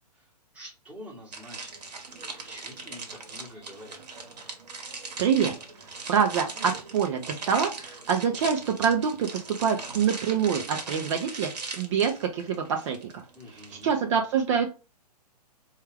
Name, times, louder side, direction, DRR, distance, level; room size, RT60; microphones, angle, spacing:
voice 1, 0.5-2.1 2.4-4.0 13.3-13.9, equal, 5° right, -3 dB, 1.2 m, -47 dB
sound 1, 1.3-14.0, right 4 dB, 75° right, 1.2 m, -39 dB
voice 2, 5.2-5.5 6.0-13.2 13.7-14.7, right 7 dB, 45° right, 3 dB, 0.7 m, -26 dB
4.4 x 2.4 x 3.3 m, 0.31 s
hypercardioid pair, 130°, 21 cm